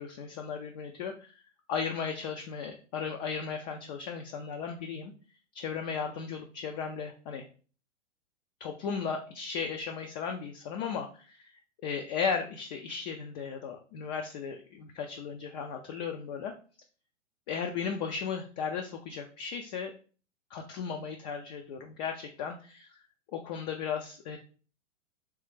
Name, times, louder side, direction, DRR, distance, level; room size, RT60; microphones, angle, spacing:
voice 1, 0.0-1.3 1.7-5.1 5.5-7.4 8.6-11.4 11.8-16.5 17.5-19.9 20.5-22.9 23.3-24.4, left 6 dB, 35° left, 3 dB, 0.4 m, -35 dB
3.3 x 3.1 x 3.2 m, 0.39 s
hypercardioid pair, 110°, 37 cm